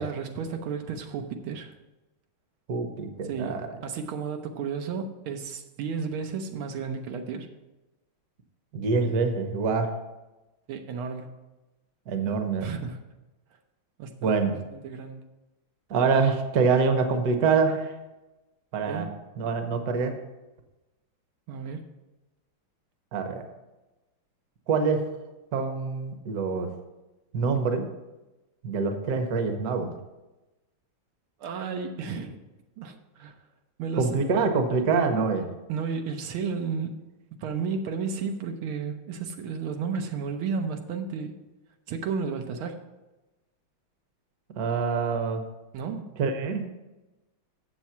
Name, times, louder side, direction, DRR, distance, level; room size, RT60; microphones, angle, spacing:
voice 1, 0.0-1.7 3.2-7.5 10.7-11.4 12.6-13.0 14.0-15.2 18.9-19.2 21.5-21.9 31.4-32.4 32.8-33.4 33.8-34.2 35.7-37.1 37.4-41.4 41.9-42.8 45.7-46.1, right 5 dB, 85° right, 5 dB, 1.7 m, -33 dB
voice 2, 2.7-3.7 8.7-9.9 12.1-12.7 14.2-14.5 15.9-17.9 18.7-19.1 19.4-20.1 23.1-23.4 24.7-25.0 25.5-26.7 27.3-27.9 28.6-29.9 34.0-35.4 44.6-45.4 46.2-46.7, right 4 dB, 55° right, 6 dB, 1.2 m, -25 dB
7.5 x 7.2 x 5.7 m, 1.1 s
omnidirectional pair, 2.3 m